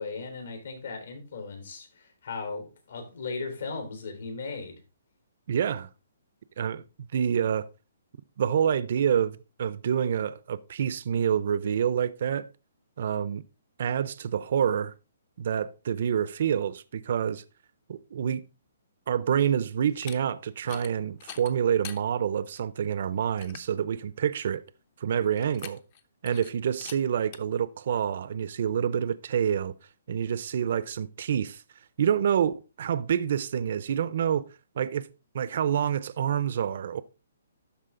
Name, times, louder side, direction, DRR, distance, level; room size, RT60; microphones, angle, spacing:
voice 1, 0.0-4.7, left 4 dB, 70° left, 3.7 m, -37 dB
voice 2, 5.5-5.9 6.6-6.8 7.1-7.7 8.4-12.5 13.0-13.4 13.8-14.9 15.4-17.4 17.9-18.4 19.1-24.6 25.0-25.8 26.2-29.7 30.1-31.6 32.0-34.5 34.8-35.1 35.3-37.0, right 8 dB, 50° right, 0.5 m, -27 dB
sound 1, 19.9-20.2 20.6-20.9 21.2-22.0 22.6-22.7 23.0-23.1 23.4-23.7 25.4-26.0 26.3-26.5 26.8-27.0 27.3-27.4, left 9 dB, 30° left, 0.6 m, -43 dB
12.5 x 4.6 x 3.7 m
hypercardioid pair, 170°, 0 cm